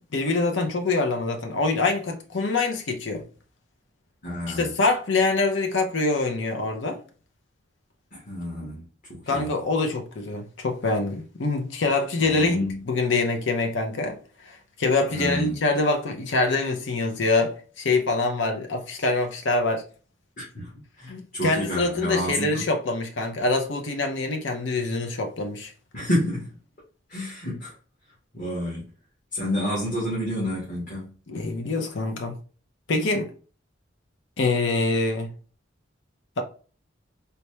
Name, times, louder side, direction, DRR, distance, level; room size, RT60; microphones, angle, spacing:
voice 1, 0.1-3.2 4.5-7.0 9.3-12.6 12.9-14.2 14.5-19.8 21.1-25.7 31.3-32.4 32.9-33.3 34.4-35.3, left 3 dB, 75° left, 0.7 m, -25 dB
voice 2, 4.2-4.7 8.1-9.5 12.2-12.8 15.1-15.6 20.4-20.7 21.0-22.6 25.9-26.5 27.1-27.7 28.3-28.9 29.3-31.1, left 1 dB, 45° left, 1.4 m, -29 dB
4.1 x 2.3 x 3.1 m
head